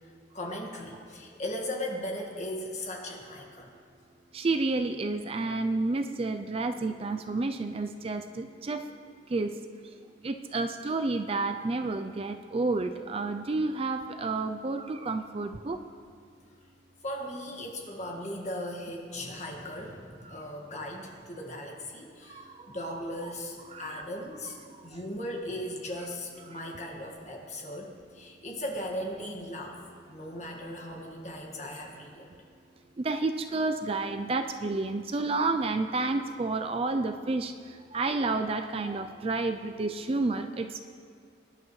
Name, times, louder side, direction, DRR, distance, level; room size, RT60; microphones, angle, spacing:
voice 1, 0.0-3.7 17.0-29.8 30.1-32.3, left 1 dB, 35° left, 0 dB, 1.8 m, -38 dB
voice 2, 4.3-8.9 9.3-9.5 10.2-15.8 20.2-20.4 22.3-22.7 23.2-23.3 23.7-24.0 24.7-24.9 26.5-26.6 33.0-40.8, right 3 dB, 30° right, 7 dB, 0.4 m, -30 dB
22.5 x 11.0 x 3.2 m, 2.2 s
head